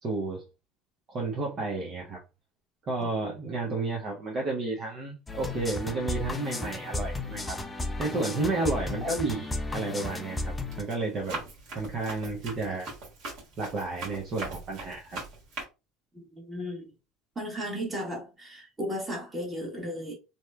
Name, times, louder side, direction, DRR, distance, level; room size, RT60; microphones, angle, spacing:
voice 1, 0.0-0.4 1.1-2.2 2.8-7.6 8.0-11.4 11.7-12.9 13.6-15.2, right 3 dB, 45° right, 0.7 m, -32 dB
sound 1, 5.3-10.8, left 2 dB, 20° left, 0.4 m, -34 dB
Run, 9.5-9.9 10.4-15.6, right 3 dB, 60° right, 1.4 m, -41 dB
voice 2, 16.3-16.9 17.4-20.1, equal, 20° right, 1.2 m, -35 dB
2.8 x 2.1 x 2.3 m
hypercardioid pair, 85°, 0 cm